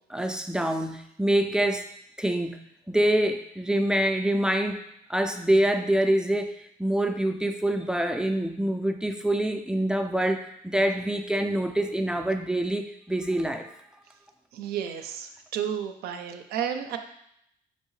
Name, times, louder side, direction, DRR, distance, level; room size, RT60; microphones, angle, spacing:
voice 1, 0.1-1.9 2.2-2.6 2.9-4.8 5.1-6.5 6.8-13.7, right 1 dB, 5° right, 6 dB, 0.3 m, -25 dB
voice 2, 14.5-17.0, right 9 dB, 70° right, 7 dB, 0.5 m, -32 dB
5.2 x 2.7 x 3.1 m, 0.74 s
cardioid pair, 110°, 17 cm